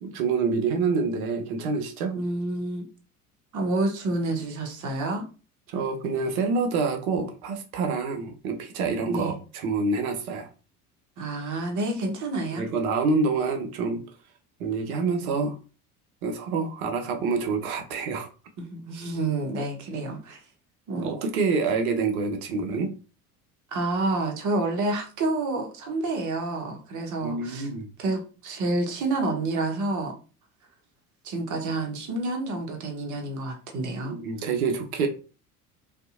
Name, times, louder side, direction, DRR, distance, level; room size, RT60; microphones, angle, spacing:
voice 1, 0.0-2.1 5.7-10.5 12.5-14.0 14.6-15.6 16.2-18.3 21.0-22.9 27.2-27.9 34.0-35.1, right 4 dB, 70° right, 0.7 m, -27 dB
voice 2, 2.1-2.8 3.5-5.2 9.1-9.4 11.2-12.7 18.6-20.4 20.9-21.1 23.7-27.7 28.0-30.1 31.2-34.2, right 2 dB, 40° right, 0.9 m, -29 dB
2.7 x 2.4 x 2.4 m
hypercardioid pair, 65°, 44 cm